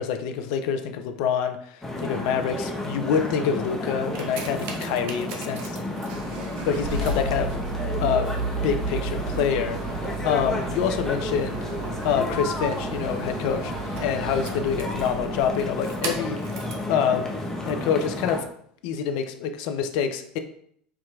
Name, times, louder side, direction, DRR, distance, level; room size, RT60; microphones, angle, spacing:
voice 1, 0.0-5.8 6.6-7.6 8.0-8.3 8.6-11.6 12.0-13.7 14.0-16.4 16.9-17.3 17.6-18.4 18.8-20.4, left 7 dB, 60° left, 7 dB, 0.4 m, -26 dB
sound 1, 1.8-18.4, left 1 dB, 10° left, 0.8 m, -32 dB
sound 2, 3.9-16.9 17.6-17.7, right 3 dB, 60° right, 0.7 m, -33 dB
4.6 x 2.8 x 2.3 m, 0.64 s
hypercardioid pair, 80°, 4 cm